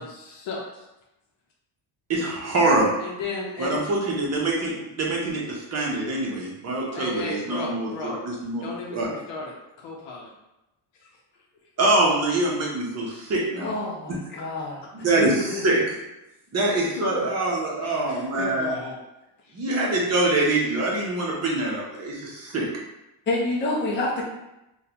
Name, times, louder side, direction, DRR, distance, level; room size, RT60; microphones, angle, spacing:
voice 1, 0.0-0.9 3.0-3.8 6.9-8.2 8.6-9.5 9.8-10.3 17.1-17.3 17.8-19.0 19.4-19.6, left 3 dB, 65° left, -2 dB, 0.7 m, -34 dB
voice 2, 2.1-2.9 3.6-9.1 11.8-13.7 15.0-16.0 16.5-18.7 19.5-22.7, right 2 dB, 35° right, -3 dB, 0.8 m, -24 dB
voice 3, 13.6-14.8 15.2-15.8 23.3-24.2, left 2 dB, 25° left, -3 dB, 0.5 m, -28 dB
3.7 x 2.3 x 2.8 m, 0.93 s
cardioid pair, 150°, 48 cm